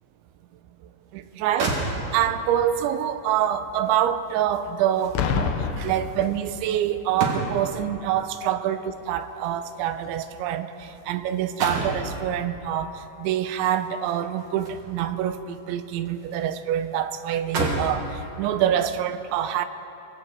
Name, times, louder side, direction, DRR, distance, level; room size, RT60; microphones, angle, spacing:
voice 1, 1.1-19.7, right 10 dB, 80° right, 10 dB, 3.2 m, -26 dB
sound 1, 1.2-1.3 1.6-2.4 3.8-7.8 8.9-11.1 11.3-12.1 13.6-15.1 15.5-16.5 16.8-16.9 17.3-18.0 18.7-18.9, right 2 dB, 45° right, 4.1 m, -32 dB
Boom, 5.2-6.9 7.8-8.0, left 6 dB, 70° left, 3.0 m, -28 dB
27.5 x 24.0 x 4.8 m, 2.8 s
omnidirectional pair, 5.5 m